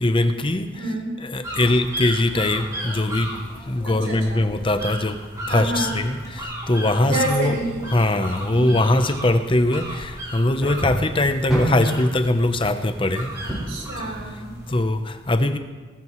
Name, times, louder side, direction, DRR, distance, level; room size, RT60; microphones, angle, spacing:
voice 1, 0.0-0.8 1.2-5.2 5.5-7.6 7.9-13.4 14.0-14.1 14.7-15.6, left 1 dB, 25° left, 8 dB, 0.8 m, -21 dB
voice 2, 0.8-1.1 3.8-4.4 5.5-6.0 7.1-7.9 8.5-8.8 13.7-14.5, right 2 dB, 75° right, -2 dB, 4.6 m, -28 dB
sound 1, 1.4-14.8, right 1 dB, 20° right, 3.0 m, -35 dB
sound 2, 2.3-13.9, equal, 5° right, 4.5 m, -34 dB
19.5 x 14.0 x 3.2 m, 1.3 s
head